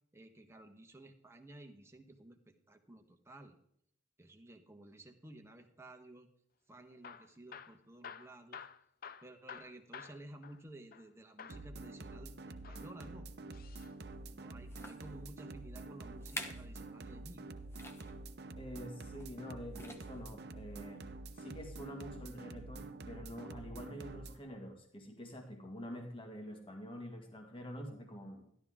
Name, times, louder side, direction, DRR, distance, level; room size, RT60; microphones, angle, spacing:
voice 1, 0.1-3.6 4.2-6.3 6.7-8.7 9.2-13.3 14.3-17.5, right 1 dB, 15° right, 4 dB, 1.3 m, -54 dB
Hammer / Drill, 6.9-11.1 11.4-11.7 12.5-13.9 15.7-16.9 18.6-19.1 19.8-20.6 21.3-21.6 21.9-22.0 22.6-22.7, left 7 dB, 50° left, 0.6 m, -53 dB
sound 1, 11.5-24.4, right 2 dB, 60° right, 0.9 m, -48 dB
sound 2, 14.0-14.1 14.7-15.1 15.8-15.9 16.2-16.7 17.0-17.2 17.7-18.1 19.2-19.4 19.7-20.3 21.0-21.1, left 1 dB, 15° left, 1.2 m, -47 dB
voice 2, 18.6-21.1 21.4-28.5, equal, 30° left, 2 dB, 1.8 m, -47 dB
14.0 x 11.5 x 3.7 m, 0.68 s
head